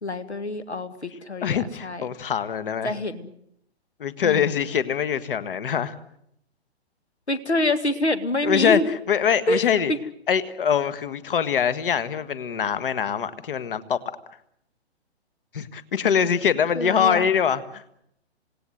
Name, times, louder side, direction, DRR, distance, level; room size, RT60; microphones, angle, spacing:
voice 1, 0.0-2.1 2.8-3.3 4.2-4.4 7.3-8.8 9.5-9.6 9.9-10.0 16.8-17.2, left 1 dB, 80° left, 11 dB, 2.0 m, -26 dB
voice 2, 1.4-2.9 4.0-6.0 8.4-8.8 9.1-9.9 10.3-14.0 15.5-18.0, left 8 dB, 55° left, 13 dB, 1.6 m, -23 dB
27.5 x 18.5 x 7.9 m, 0.74 s
figure-of-eight pair, 120°, 33 cm